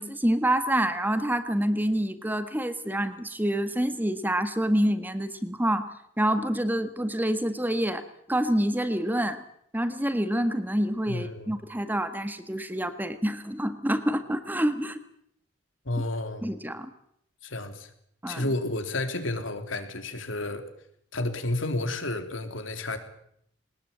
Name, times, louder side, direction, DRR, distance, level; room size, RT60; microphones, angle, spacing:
voice 1, 0.0-5.9 6.2-8.0 8.3-9.4 9.7-15.0 16.4-16.9 18.2-18.4, right 1 dB, 10° right, 10 dB, 1.5 m, -27 dB
voice 2, 11.1-11.6 15.9-16.4 17.4-17.9 18.3-20.7 21.1-23.0, left 2 dB, 90° left, 8 dB, 3.5 m, -31 dB
21.5 x 19.5 x 8.7 m, 0.71 s
head